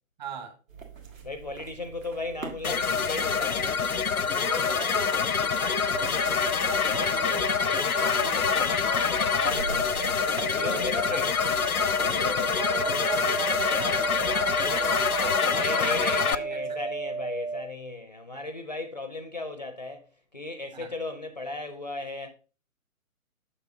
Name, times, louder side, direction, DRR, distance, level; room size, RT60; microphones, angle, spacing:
voice 1, 0.2-0.6 4.3-8.8 9.4-9.8 10.5-11.2 12.0-15.7 16.3-16.8 20.7-20.9, right 4 dB, 30° right, 1.2 m, -40 dB
sound 1, 0.7-15.3, right 5 dB, 65° right, 1.5 m, -45 dB
voice 2, 1.2-3.8 9.6-11.3 15.5-20.1 20.3-22.3, left 2 dB, 30° left, 0.4 m, -36 dB
sound 2, 2.6-16.3, left 6 dB, 85° left, 0.6 m, -26 dB
sound 3, 5.9-17.6, right 3 dB, 85° right, 1.2 m, -34 dB
6.9 x 6.8 x 2.6 m
figure-of-eight pair, 135°, 43 cm